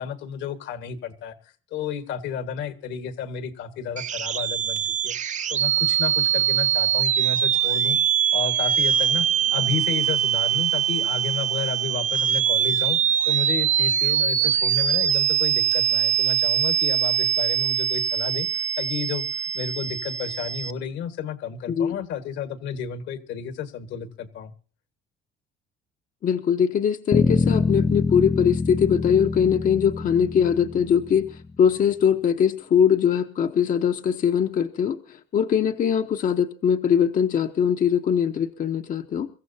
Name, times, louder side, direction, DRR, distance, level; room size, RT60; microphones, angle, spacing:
voice 1, 0.0-1.4 1.7-5.2 5.5-8.0 8.3-13.0 13.3-19.2 19.5-24.5, left 7 dB, 70° left, 10 dB, 1.6 m, -32 dB
sound 1, 4.0-20.7, right 10 dB, 40° right, 0.6 m, -23 dB
voice 2, 21.7-22.0 26.2-39.3, left 8 dB, 45° left, 6 dB, 0.9 m, -22 dB
Bass guitar, 27.1-31.5, left 4 dB, 20° left, 0.6 m, -25 dB
23.5 x 14.5 x 2.7 m, 0.38 s
cardioid pair, 125°, 20 cm